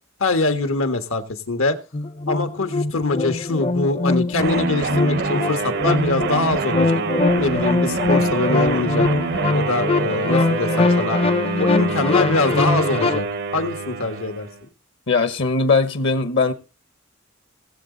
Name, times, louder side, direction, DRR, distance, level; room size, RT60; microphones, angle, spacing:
voice 1, 0.2-1.8 2.3-7.0 7.4-9.1 9.5-11.2 11.6-13.3 13.5-14.7, left 3 dB, 85° left, 1.5 m, -23 dB
sound 1, 1.9-13.2, left 3 dB, 30° left, 0.5 m, -22 dB
sound 2, 4.4-14.6, right 5 dB, 55° right, 0.6 m, -26 dB
voice 2, 15.1-16.5, left 4 dB, 65° left, 1.0 m, -19 dB
19.5 x 7.3 x 3.9 m
head